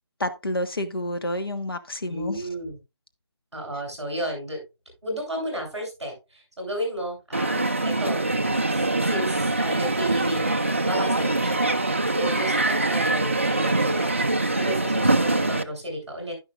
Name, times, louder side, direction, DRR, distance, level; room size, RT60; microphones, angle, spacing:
voice 1, 0.2-2.5, left 1 dB, 55° left, 1.5 m, -29 dB
voice 2, 2.1-2.8 3.5-4.6 5.0-8.2 8.7-16.3, equal, ahead, 7.5 m, -33 dB
Crowd, 7.3-15.6, right 2 dB, 30° right, 0.5 m, -23 dB
11.0 x 10.5 x 2.5 m
figure-of-eight pair, 175°, 14 cm